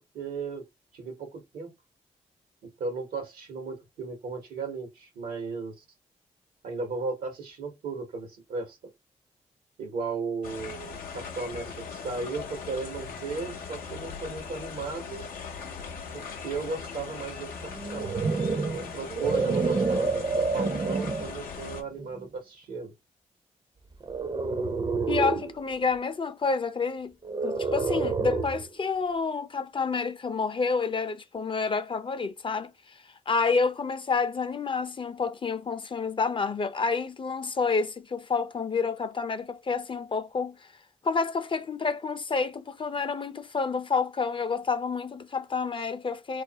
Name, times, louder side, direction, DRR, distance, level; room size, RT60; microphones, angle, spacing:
voice 1, 0.1-0.6 0.9-1.7 2.6-5.8 6.6-8.8 9.8-15.3 16.1-18.2 18.7-22.9, right 4 dB, 80° right, 0.9 m, -35 dB
sound 1, 10.4-21.8, left 6 dB, 85° left, 0.5 m, -39 dB
sound 2, 17.7-21.3 22.0-22.2 24.0-25.5 27.2-28.7, right 4 dB, 30° right, 0.5 m, -28 dB
voice 2, 25.1-27.2 27.4-32.7 33.3-40.6 41.0-46.4, left 4 dB, 35° left, 0.4 m, -29 dB
2.4 x 2.0 x 2.7 m
supercardioid pair, 45°, 15 cm